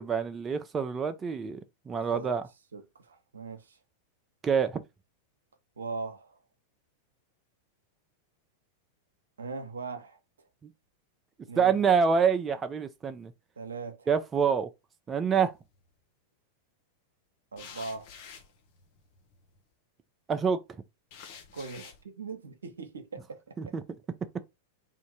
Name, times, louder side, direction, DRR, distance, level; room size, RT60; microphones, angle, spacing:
voice 1, 0.0-1.6 1.9-2.5 4.4-4.8 11.6-13.3 14.1-14.7 15.1-15.5 20.3-20.6 23.6-23.8, right 6 dB, 25° right, 0.5 m, -26 dB
voice 2, 2.0-2.4 2.7-3.8 5.8-6.4 9.4-10.2 11.5-11.8 13.6-14.1 17.5-18.1 21.5-23.7, right 4 dB, 85° right, 0.8 m, -40 dB
sound 1, 15.3-15.8 17.6-19.6 21.1-22.0, left 7 dB, 55° left, 1.0 m, -49 dB
3.6 x 2.6 x 4.5 m
hypercardioid pair, 100°, 0 cm